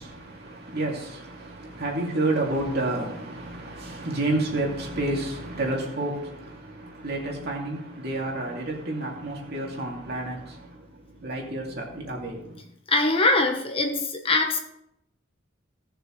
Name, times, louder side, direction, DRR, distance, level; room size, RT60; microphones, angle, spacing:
voice 1, 0.0-12.6, right 2 dB, 50° right, 2.5 m, -30 dB
voice 2, 12.9-14.6, left 2 dB, 25° left, 1.1 m, -22 dB
17.5 x 6.9 x 3.2 m
head